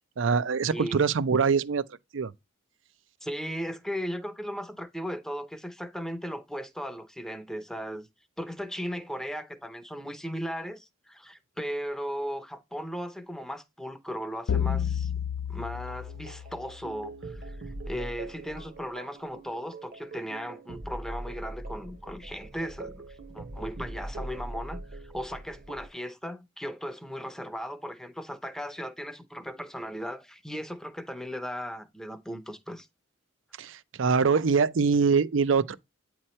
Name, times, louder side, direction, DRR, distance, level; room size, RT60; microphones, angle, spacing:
voice 1, 0.2-1.8 2.1-2.3 33.6-35.7, right 5 dB, 75° right, 0.5 m, -24 dB
voice 2, 0.7-1.0 3.2-8.1 8.4-15.1 15.5-32.9, equal, 5° left, 0.7 m, -37 dB
sound 1, 14.5-17.0, left 8 dB, 75° left, 0.4 m, -30 dB
sound 2, 15.7-25.9, right 2 dB, 50° right, 0.9 m, -42 dB
8.8 x 3.0 x 4.3 m
head